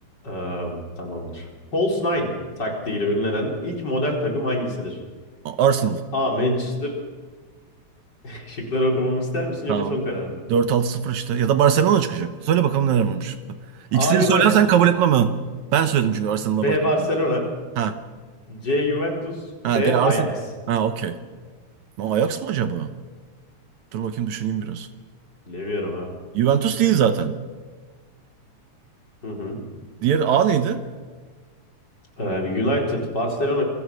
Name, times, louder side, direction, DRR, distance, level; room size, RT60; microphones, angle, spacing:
voice 1, 0.2-2.3 2.6-5.0 6.1-7.0 8.2-10.4 13.9-14.5 16.6-17.5 18.5-20.3 25.5-26.1 29.2-29.6 32.2-33.6, left 1 dB, 35° left, 0 dB, 4.8 m, -25 dB
voice 2, 5.5-6.0 9.7-10.0 10.5-13.6 13.9-15.4 15.7-16.9 17.8-18.0 19.6-20.3 20.7-21.2 22.0-22.9 23.9-24.9 26.3-27.4 30.0-30.8, right 8 dB, 75° right, 9 dB, 2.4 m, -21 dB
27.5 x 24.0 x 6.3 m, 1.4 s
omnidirectional pair, 3.4 m